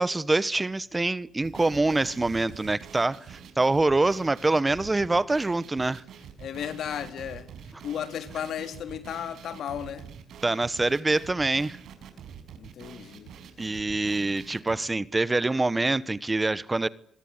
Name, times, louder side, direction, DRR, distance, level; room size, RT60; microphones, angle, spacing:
voice 1, 0.0-6.0 10.4-11.8 13.6-16.9, right 2 dB, 20° right, 1.1 m, -25 dB
sound 1, 1.4-14.8, right 8 dB, 70° right, 5.4 m, -45 dB
voice 2, 6.2-10.1 12.1-13.9, left 9 dB, 70° left, 3.6 m, -36 dB
26.0 x 21.0 x 9.7 m
cardioid pair, 90°, 0 cm